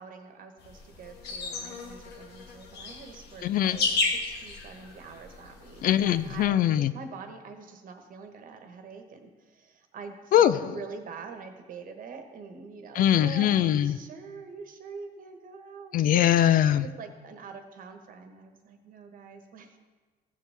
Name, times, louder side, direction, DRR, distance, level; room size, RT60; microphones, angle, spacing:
voice 1, 0.0-3.9 4.2-16.2 16.7-19.8, right 5 dB, 55° right, 6 dB, 1.2 m, -44 dB
sound 1, 0.6-6.5, left 3 dB, 75° left, 1.2 m, -34 dB
voice 2, 3.4-3.8 5.8-6.9 10.3-10.7 12.9-14.0 15.9-16.9, left 11 dB, 55° left, 14 dB, 0.4 m, -22 dB
15.0 x 7.2 x 3.4 m, 1.4 s
cardioid pair, 110°, 17 cm